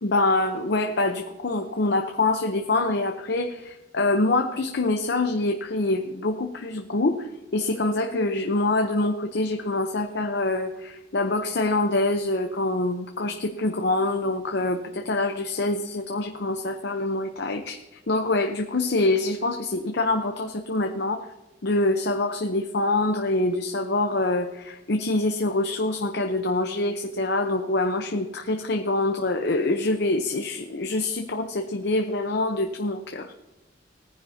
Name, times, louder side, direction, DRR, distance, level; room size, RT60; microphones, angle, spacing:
voice 1, 0.0-17.8 18.1-21.3 21.6-33.3, left 2 dB, 65° left, 5 dB, 0.8 m, -25 dB
18.5 x 10.0 x 2.8 m, 1.0 s
head